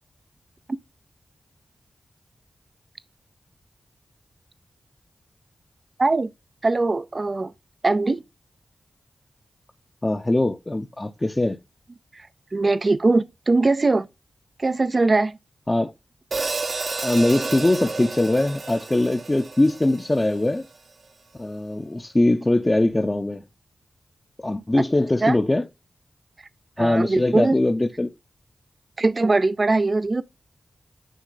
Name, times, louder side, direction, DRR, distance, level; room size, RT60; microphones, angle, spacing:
voice 1, 6.0-6.3 6.6-7.5 7.8-8.2 12.1-12.3 12.5-14.1 14.6-15.4 25.2-25.4 26.8-27.5 29.0-30.2, right 3 dB, 45° right, 0.5 m, -21 dB
voice 2, 10.0-11.6 15.7-15.9 17.0-20.7 21.4-23.4 24.4-25.6 26.8-28.1, left 1 dB, 25° left, 0.7 m, -21 dB
Hi-hat, 16.3-20.6, right 3 dB, 60° right, 1.0 m, -31 dB
9.2 x 3.3 x 3.9 m
cardioid pair, 45°, 0 cm